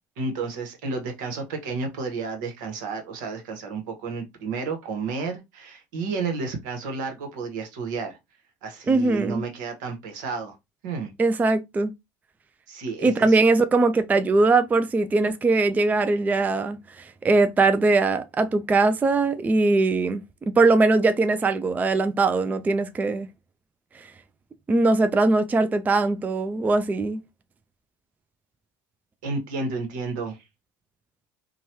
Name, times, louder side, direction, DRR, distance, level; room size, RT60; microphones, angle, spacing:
voice 1, 0.2-8.2 8.6-10.5 10.8-11.1 12.7-13.4 29.2-30.4, right 4 dB, 75° right, 1.1 m, -31 dB
voice 2, 8.9-9.4 11.2-11.9 13.0-23.3 23.9-24.1 24.7-27.2, right 3 dB, 15° right, 0.3 m, -21 dB
3.0 x 2.3 x 2.8 m
hypercardioid pair, 90°, 10 cm